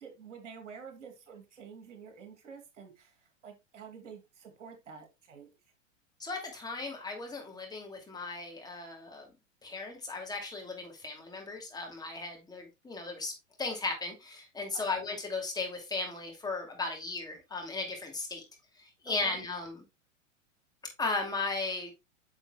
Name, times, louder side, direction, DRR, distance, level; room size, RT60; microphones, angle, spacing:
voice 1, 0.0-5.6 14.7-15.0 19.1-19.4, right 6 dB, 65° right, 2.7 m, -49 dB
voice 2, 6.2-9.3 9.6-13.3 13.6-18.4 18.8-19.8 20.8-21.9, left 3 dB, 10° left, 2.5 m, -36 dB
9.6 x 6.4 x 2.2 m
figure-of-eight pair, 100°, 38 cm